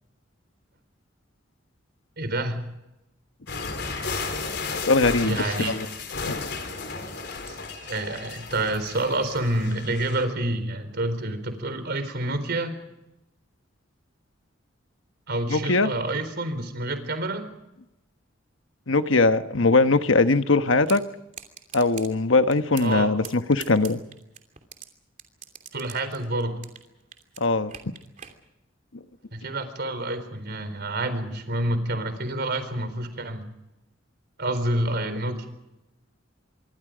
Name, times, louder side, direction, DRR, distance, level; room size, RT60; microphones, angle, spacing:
voice 1, 2.2-2.7 5.2-5.8 7.5-12.8 15.3-17.5 22.8-23.1 25.7-26.6 29.3-33.4 34.4-35.4, right 1 dB, 55° right, 10 dB, 4.2 m, -28 dB
sound 1, 3.5-10.2, left 4 dB, 60° left, 4.1 m, -34 dB
voice 2, 4.7-5.9 6.2-6.4 15.5-15.9 18.9-21.0 21.7-24.0 27.4-27.7, left 3 dB, 75° left, 9 dB, 1.2 m, -21 dB
sound 2, 20.9-21.0 21.3-22.1 22.5-23.0 23.2-24.9 25.2-26.9 27.1-28.3, right 8 dB, 40° right, 2.9 m, -41 dB
26.5 x 23.5 x 5.1 m, 0.93 s
head